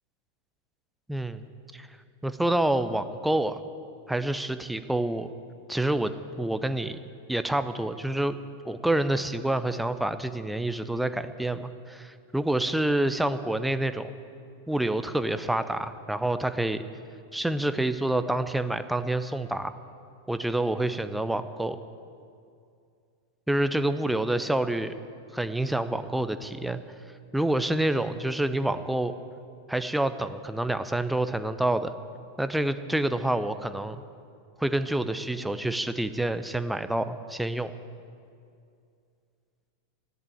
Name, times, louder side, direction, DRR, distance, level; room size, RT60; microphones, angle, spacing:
voice 1, 1.1-1.5 1.7-1.9 2.2-3.6 4.1-5.3 5.7-7.0 7.3-8.3 8.6-14.1 14.7-16.8 17.3-19.7 20.3-21.8 23.5-25.0 25.3-26.8 27.3-29.1 29.7-31.9 32.4-34.0 34.6-37.7, right 1 dB, 5° right, 11 dB, 0.7 m, -27 dB
13.5 x 11.0 x 8.9 m, 2.4 s
figure-of-eight pair, 90°, 0 cm